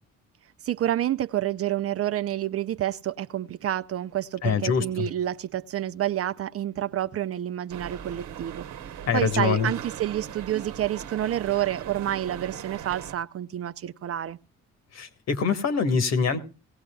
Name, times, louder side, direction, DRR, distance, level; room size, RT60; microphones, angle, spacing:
voice 1, 0.6-8.6 9.1-14.4, right 12 dB, 50° right, 0.5 m, -28 dB
voice 2, 4.4-5.1 9.1-9.7 14.9-16.4, left 5 dB, 60° left, 1.6 m, -24 dB
sound 1, 7.7-13.1, right 9 dB, 70° right, 1.1 m, -39 dB
18.5 x 16.5 x 2.3 m
cardioid pair, 90°, 30 cm